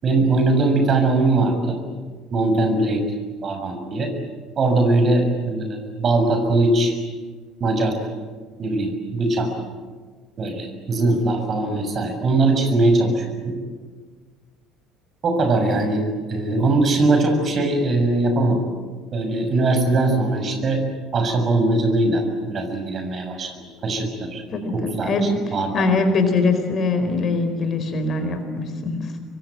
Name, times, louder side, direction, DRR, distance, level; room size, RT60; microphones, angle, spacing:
voice 1, 0.0-1.8 2.3-3.0 3.4-4.1 4.6-6.9 7.6-8.0 8.6-9.5 10.4-13.5 15.2-18.7 19.1-20.8 21.1-24.4 24.7-25.1 25.5-25.8, right 2 dB, 40° right, 5 dB, 6.6 m, -21 dB
voice 2, 24.5-29.1, left 3 dB, 45° left, 8 dB, 4.5 m, -22 dB
25.5 x 23.5 x 9.2 m, 1.5 s
figure-of-eight pair, 60°, 0 cm